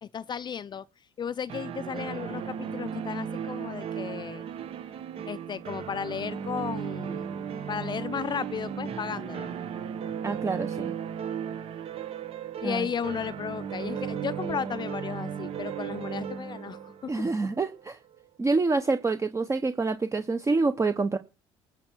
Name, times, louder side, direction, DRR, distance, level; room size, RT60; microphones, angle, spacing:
voice 1, 0.0-0.8 1.2-4.4 5.3-7.3 7.7-9.6 12.6-17.1, left 7 dB, 40° left, 0.5 m, -34 dB
sound 1, 1.5-18.2, right 8 dB, 55° right, 1.3 m, -36 dB
voice 2, 10.2-10.9 12.6-12.9 17.1-18.0 18.4-21.2, right 3 dB, 25° right, 1.0 m, -27 dB
20.0 x 7.5 x 4.6 m
supercardioid pair, 80°, 12 cm